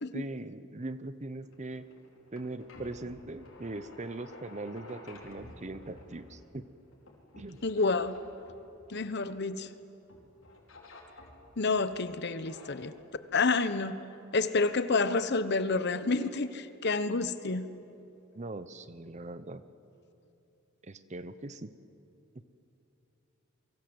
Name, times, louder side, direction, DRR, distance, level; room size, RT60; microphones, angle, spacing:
voice 1, 0.1-1.9 2.3-6.6 7.4-7.6 18.3-19.6 20.8-21.7, right 2 dB, 35° right, 13 dB, 0.9 m, -40 dB
sound 1, 1.4-9.7 10.1-11.7 12.2-12.8, left 1 dB, 85° left, 4.9 m, -52 dB
voice 2, 7.6-8.1 8.9-9.7 11.6-12.9 13.3-14.0 14.3-17.6, left 3 dB, 55° left, 12 dB, 1.1 m, -29 dB
28.0 x 24.0 x 8.0 m, 2.9 s
head